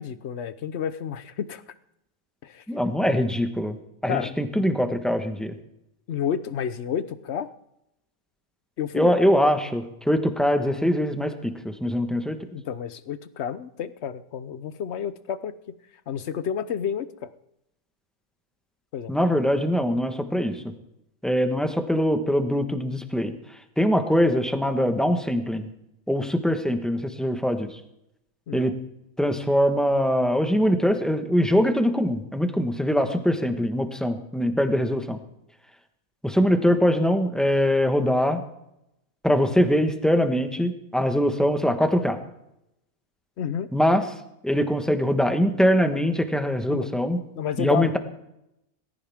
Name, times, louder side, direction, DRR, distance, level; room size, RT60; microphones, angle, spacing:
voice 1, 0.0-1.6 2.4-2.6 4.1-4.3 6.1-7.5 8.8-9.1 12.5-15.5 16.1-17.3 18.9-19.1 28.5-28.7 43.4-43.7 46.7-46.9 47.4-48.0, left 8 dB, 60° left, 14 dB, 1.0 m, -30 dB
voice 2, 2.7-3.8 4.0-5.5 8.9-12.4 19.1-20.6 21.2-23.3 23.8-25.7 26.1-27.7 28.5-28.8 29.2-35.2 36.2-38.4 39.2-42.2 43.7-44.1 44.4-47.2 47.6-48.0, equal, ahead, 6 dB, 1.2 m, -22 dB
19.0 x 16.0 x 3.6 m, 0.82 s
omnidirectional pair, 1.4 m